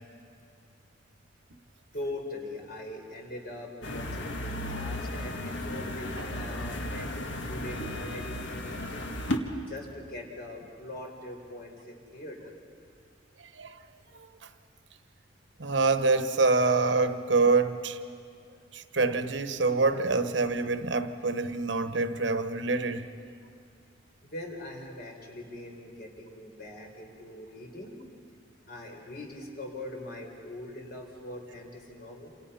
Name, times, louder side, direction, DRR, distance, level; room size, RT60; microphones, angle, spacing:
voice 1, 1.9-9.1 9.7-12.5 24.2-27.9 28.7-32.3, left 1 dB, 55° left, 4.3 m, -42 dB
sound 1, 3.8-9.4, left 1 dB, 75° left, 1.7 m, -34 dB
voice 2, 15.6-18.0 18.7-23.1, right 3 dB, 70° right, 1.1 m, -26 dB
28.0 x 27.5 x 5.7 m
head